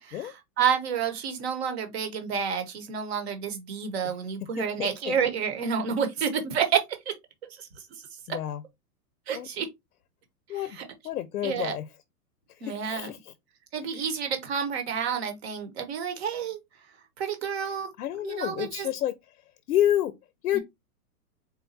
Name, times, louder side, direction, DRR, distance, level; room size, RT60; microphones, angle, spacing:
voice 1, 0.0-7.1 7.5-7.7 8.3-8.4 9.3-9.7 10.8-10.9 11.4-11.7 12.6-13.1 13.7-16.6 17.2-17.9 18.2-18.9 20.5-20.6, right 7 dB, 40° right, 1.0 m, -29 dB
voice 2, 4.4-5.2 8.3-8.6 9.3-9.5 10.5-10.8 11.0-11.9 12.5-13.3 13.9-14.0 18.0-19.2 19.7-20.1 20.4-20.6, left 12 dB, 65° left, 0.6 m, -29 dB
4.1 x 2.2 x 3.9 m
hypercardioid pair, 165°, 48 cm